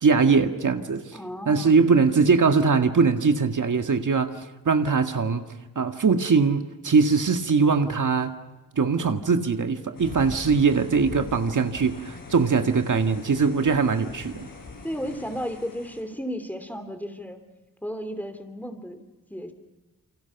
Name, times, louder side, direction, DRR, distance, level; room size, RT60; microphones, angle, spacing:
voice 1, 0.0-1.0 1.5-4.3 4.7-5.4 5.8-8.3 8.7-14.5, right 5 dB, 60° right, 6 dB, 1.8 m, -21 dB
voice 2, 1.1-1.8 14.8-17.4 17.8-19.0 19.3-19.5, equal, 5° left, 8 dB, 2.8 m, -33 dB
sound 1, 10.0-16.0, left 3 dB, 70° left, 7.0 m, -42 dB
29.5 x 28.0 x 6.0 m, 1.1 s
wide cardioid pair, 130°, 34 cm